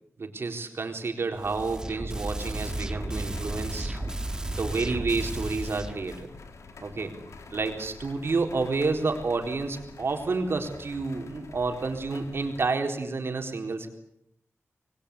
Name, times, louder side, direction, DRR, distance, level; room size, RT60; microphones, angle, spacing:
voice 1, 0.2-4.0 4.5-6.3 6.8-7.1 7.5-13.9, right 3 dB, 55° right, 4 dB, 4.1 m, -30 dB
sound 1, 1.4-6.2, right 1 dB, 15° right, 1.7 m, -34 dB
sound 2, 2.4-12.7, left 4 dB, 85° left, 3.4 m, -47 dB
26.5 x 22.0 x 8.5 m, 0.75 s
wide cardioid pair, 135°, 5 cm